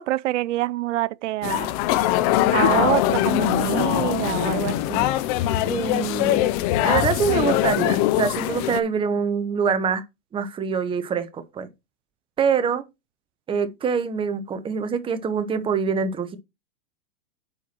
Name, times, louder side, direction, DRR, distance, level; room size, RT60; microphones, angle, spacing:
voice 1, 0.0-1.7 2.5-5.1, right 15 dB, 60° right, 0.6 m, -26 dB
sound 1, 1.4-8.8, left 14 dB, 30° left, 0.5 m, -22 dB
voice 2, 5.7-6.5 6.8-10.0 10.3-11.7 12.4-12.8 13.5-16.4, right 6 dB, 15° right, 0.8 m, -25 dB
8.6 x 4.6 x 4.3 m
hypercardioid pair, 140°, 41 cm